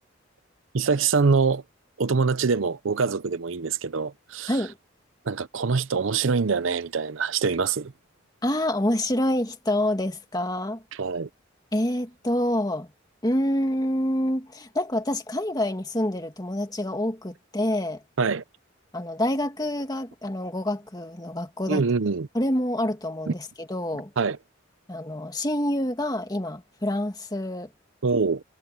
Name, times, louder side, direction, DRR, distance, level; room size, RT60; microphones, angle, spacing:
voice 1, 0.7-1.6 2.0-4.6 5.3-7.9 11.0-11.3 18.2-18.4 21.7-22.3 23.3-23.4 24.2-24.4 28.0-28.4, right 5 dB, 75° right, 0.7 m, -24 dB
voice 2, 8.4-10.8 11.7-12.9 13.2-18.0 18.9-21.8 22.3-24.1 24.9-27.7, left 1 dB, 20° left, 2.1 m, -27 dB
head